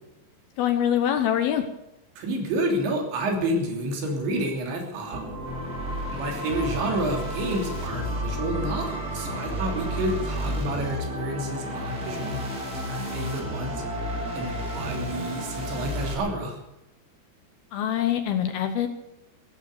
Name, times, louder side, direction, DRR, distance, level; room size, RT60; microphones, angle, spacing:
voice 1, 0.6-1.6 17.7-18.9, left 10 dB, 70° left, 8 dB, 2.5 m, -24 dB
voice 2, 2.2-5.2 6.0-12.5 12.9-13.8 14.4-16.6, right 1 dB, 75° right, 2 dB, 5.4 m, -29 dB
sound 1, 5.1-16.1, equal, 25° right, 2.7 m, -31 dB
15.5 x 14.0 x 6.7 m, 0.90 s
omnidirectional pair, 5.3 m